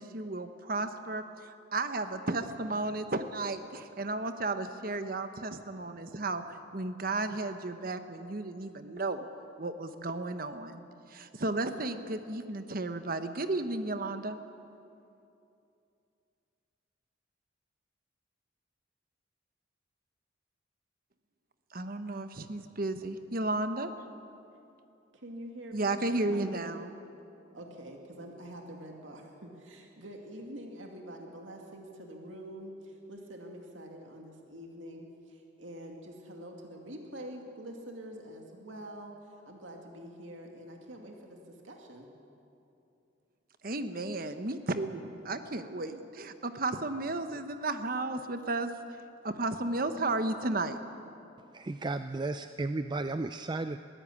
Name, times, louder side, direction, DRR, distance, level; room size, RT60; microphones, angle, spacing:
voice 1, 0.0-6.4 6.7-9.3 9.6-10.8 11.1-14.4 21.7-23.9 25.7-26.9 43.6-49.0 49.2-50.8, right 2 dB, 50° right, 9 dB, 1.1 m, -33 dB
voice 2, 25.1-26.0 26.3-26.8 27.5-42.1, right 1 dB, 85° right, 1 dB, 2.4 m, -46 dB
voice 3, 51.5-53.8, right 2 dB, 25° right, 10 dB, 0.4 m, -34 dB
21.5 x 15.5 x 8.6 m, 2.7 s
head